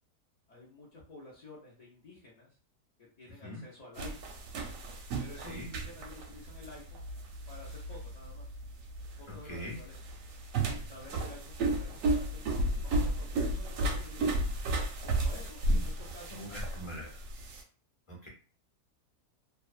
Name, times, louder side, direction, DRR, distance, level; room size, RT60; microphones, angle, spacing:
voice 1, 0.5-2.6 3.0-4.4 5.2-7.1 7.5-8.6 9.2-10.0 10.6-14.4 15.0-17.1, left 2 dB, 60° left, -5 dB, 0.4 m, -51 dB
sound 1, 4.0-17.6, right 2 dB, 70° right, 0.8 m, -33 dB
voice 2, 9.3-9.8 15.7-15.8 16.3-17.1 18.1-18.3, equal, 25° left, -3 dB, 0.7 m, -42 dB
2.7 x 2.2 x 2.4 m, 0.39 s
omnidirectional pair, 1.7 m